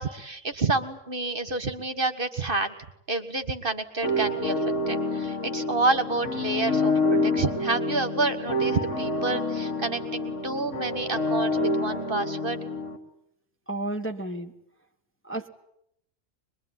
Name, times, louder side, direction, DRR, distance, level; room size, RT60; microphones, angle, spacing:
voice 1, 0.0-2.7 3.1-4.6 4.9-12.6, right 3 dB, 45° right, 9 dB, 1.8 m, -29 dB
sound 1, 4.0-13.0, left 2 dB, 70° left, 3.3 m, -27 dB
voice 2, 13.7-14.5 15.2-15.5, right 2 dB, 10° left, 4 dB, 1.4 m, -32 dB
24.5 x 22.0 x 9.9 m, 0.77 s
omnidirectional pair, 1.3 m